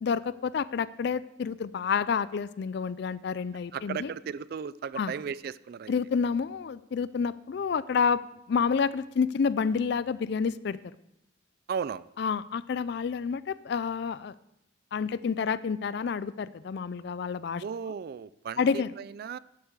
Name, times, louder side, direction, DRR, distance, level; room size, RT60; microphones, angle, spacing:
voice 1, 0.0-4.1 5.0-5.1 5.9-8.2 8.5-10.8 12.2-14.3 14.9-17.6 18.6-18.9, left 6 dB, 60° left, 17 dB, 0.4 m, -29 dB
voice 2, 3.7-5.9 11.7-12.1 17.6-19.4, right 6 dB, 55° right, 19 dB, 0.3 m, -35 dB
11.5 x 10.0 x 4.7 m, 0.80 s
head